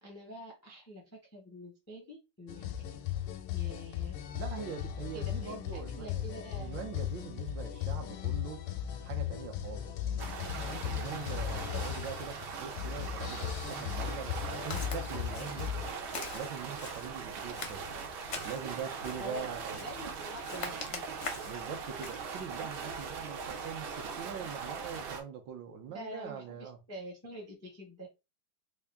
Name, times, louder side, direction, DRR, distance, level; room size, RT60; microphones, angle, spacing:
voice 1, 0.0-2.9 3.5-4.2 5.1-6.9 11.7-11.9 18.9-19.5 19.8-21.1 25.9-28.1, equal, 15° left, 0.5 m, -46 dB
sound 1, 2.5-15.9, left 10 dB, 85° left, 1.4 m, -37 dB
voice 2, 4.3-6.3 6.6-8.6 9.0-9.9 10.8-15.8 16.3-17.9 18.4-19.8 21.5-26.8, right 7 dB, 70° right, 1.3 m, -42 dB
sound 2, 10.2-25.2, right 5 dB, 90° right, 1.6 m, -41 dB
Walk footsteps, 14.7-15.0 15.3-15.7 16.1-17.1 17.5-18.7 19.0-19.3 19.7-20.1 20.4-21.6 22.0-22.2, left 4 dB, 65° left, 0.7 m, -42 dB
3.7 x 2.4 x 3.4 m
omnidirectional pair, 2.2 m